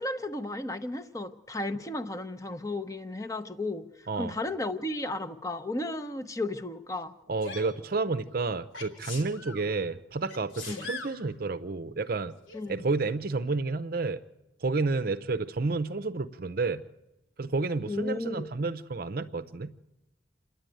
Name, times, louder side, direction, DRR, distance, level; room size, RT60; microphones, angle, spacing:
voice 1, 0.0-7.2 10.7-10.9 12.5-12.9 17.9-18.5, left 2 dB, 15° left, 0.8 m, -34 dB
voice 2, 7.3-12.3 12.7-14.2 14.6-16.8 17.4-19.7, right 3 dB, 50° right, 0.6 m, -30 dB
Sneeze, 7.4-7.7 8.7-9.6 10.3-11.2 12.5-12.6, left 4 dB, 75° left, 2.9 m, -40 dB
28.0 x 10.5 x 9.1 m
head